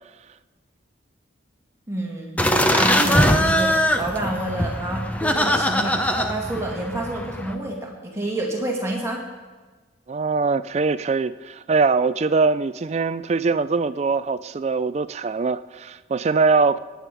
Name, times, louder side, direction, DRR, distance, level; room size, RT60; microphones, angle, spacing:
voice 1, 1.9-9.2, right 1 dB, 15° right, -2 dB, 2.1 m, -29 dB
sound 1, 2.4-7.5, equal, 5° left, 0.6 m, -21 dB
voice 2, 10.1-16.8, right 4 dB, 35° right, 14 dB, 0.3 m, -22 dB
17.5 x 9.4 x 4.9 m, 1.3 s
head